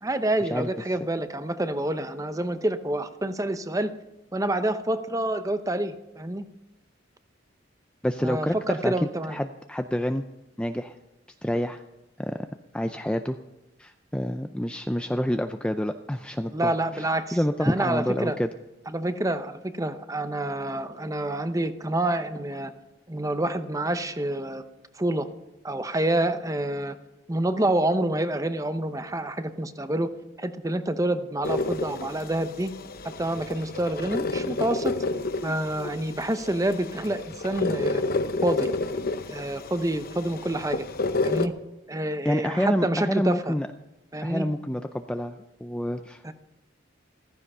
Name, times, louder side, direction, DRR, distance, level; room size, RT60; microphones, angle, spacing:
voice 1, 0.0-3.9 4.3-6.4 8.2-9.4 16.5-18.4 18.9-22.7 23.1-24.6 25.0-25.3 25.6-27.0 27.3-30.1 30.4-32.7 33.2-34.9 35.4-38.0 38.4-38.7 39.3-40.8 41.2-41.5 41.9-43.5 44.1-44.5 46.2-46.3, right 1 dB, 15° right, 10 dB, 0.8 m, -27 dB
voice 2, 8.0-10.2 10.6-10.9 11.4-11.8 12.2-12.5 12.7-13.4 13.8-17.0 17.3-18.5 42.2-43.7 44.2-45.4 45.6-46.3, equal, 5° left, 7 dB, 0.4 m, -28 dB
sound 1, 31.4-41.5, left 3 dB, 50° left, 0.8 m, -30 dB
15.0 x 14.5 x 5.6 m, 0.93 s
head